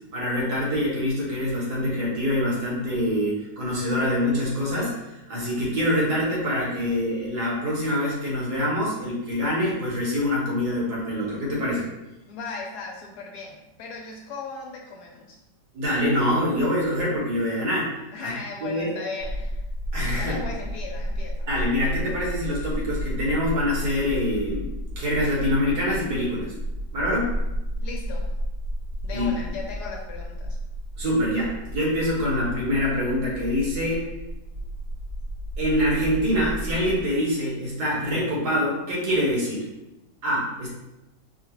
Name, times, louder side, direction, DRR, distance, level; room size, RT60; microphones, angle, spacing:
voice 1, 0.1-11.9 15.7-17.9 18.2-18.3 18.6-19.0 19.9-20.4 21.5-26.5 26.9-27.3 29.1-29.3 31.0-34.1 35.6-39.7 40.2-40.7, left 1 dB, 65° right, -4 dB, 1.7 m, -25 dB
voice 2, 12.3-15.4 18.1-19.6 20.2-21.5 27.8-28.3 29.0-30.6, left 3 dB, 70° left, 1 dB, 1.1 m, -37 dB
sound 1, 19.2-37.0, equal, 85° right, 1.8 m, -32 dB
4.9 x 2.4 x 3.0 m, 0.94 s
omnidirectional pair, 1.9 m